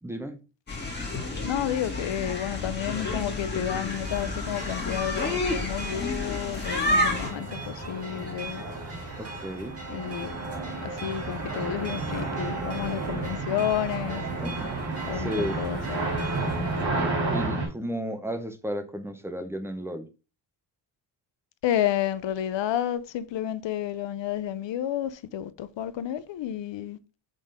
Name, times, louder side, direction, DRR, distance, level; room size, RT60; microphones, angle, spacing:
voice 1, 0.0-0.4 9.2-9.8 14.4-14.7 15.1-15.6 17.3-20.1, equal, 5° right, 0.6 m, -33 dB
sound 1, 0.7-7.3, left 2 dB, 20° left, 1.9 m, -30 dB
voice 2, 1.4-8.6 9.9-10.4 10.8-14.2 15.0-16.1 21.6-27.0, left 11 dB, 70° left, 0.6 m, -31 dB
sound 2, 3.9-16.8, right 3 dB, 30° right, 1.7 m, -40 dB
sound 3, 4.7-4.9 5.3-17.7, right 2 dB, 65° right, 3.2 m, -32 dB
5.3 x 3.7 x 5.3 m
wide cardioid pair, 150°, 46 cm